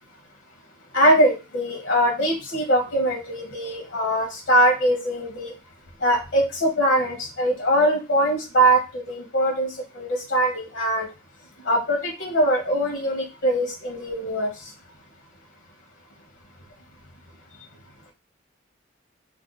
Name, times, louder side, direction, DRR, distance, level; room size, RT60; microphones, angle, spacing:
voice 1, 0.9-5.6 6.0-11.1 11.6-14.7, right 1 dB, 70° left, 0.8 m, -22 dB
2.5 x 2.2 x 3.8 m
head